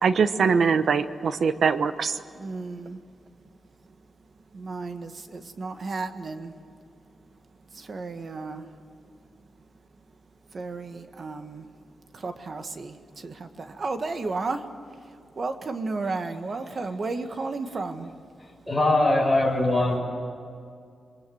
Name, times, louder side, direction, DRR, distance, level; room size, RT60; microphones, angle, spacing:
voice 1, 0.0-2.2, right 5 dB, 65° right, 12 dB, 1.0 m, -22 dB
voice 2, 2.3-3.0 4.5-6.6 7.7-8.8 10.5-11.7 12.1-18.1, right 3 dB, 45° right, 7 dB, 1.7 m, -33 dB
voice 3, 18.7-20.0, left 2 dB, ahead, -2 dB, 6.2 m, -21 dB
27.0 x 22.5 x 7.9 m, 2.2 s
wide cardioid pair, 120°, 0 cm